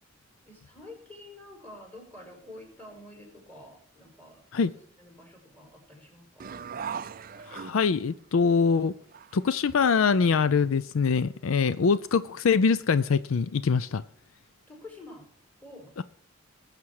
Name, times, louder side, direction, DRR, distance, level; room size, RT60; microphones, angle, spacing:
voice 1, 0.5-6.6 14.7-15.3 15.6-15.9, left 1 dB, 10° left, 5.2 m, -48 dB
sound 1, 6.4-8.2 8.7-8.8 9.1-10.3, right 7 dB, 40° right, 0.4 m, -39 dB
voice 2, 7.5-8.9 9.3-14.0, left 5 dB, 70° left, 0.5 m, -23 dB
20.0 x 7.4 x 4.8 m
head